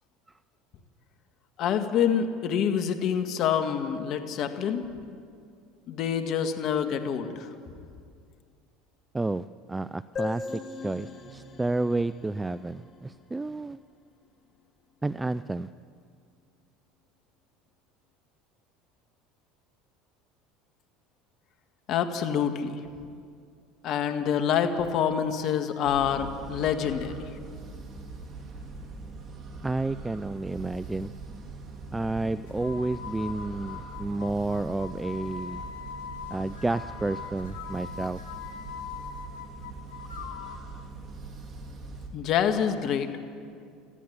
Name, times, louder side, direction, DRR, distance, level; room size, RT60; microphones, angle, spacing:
voice 1, 1.6-4.9 5.9-7.5 21.9-22.8 23.8-27.1 42.1-43.1, left 8 dB, 55° left, 7 dB, 1.8 m, -26 dB
voice 2, 9.1-13.8 15.0-15.7 29.6-31.1 31.9-35.6 36.3-38.2, right 2 dB, 15° right, 16 dB, 0.4 m, -30 dB
sound 1, 10.2-13.7, left 4 dB, 40° left, 2.6 m, -39 dB
sound 2, 25.8-42.1, right 3 dB, 40° right, 3.6 m, -42 dB
sound 3, 32.5-40.7, left 7 dB, 85° left, 2.3 m, -42 dB
20.0 x 14.5 x 9.5 m, 2.3 s
hypercardioid pair, 85°, 0 cm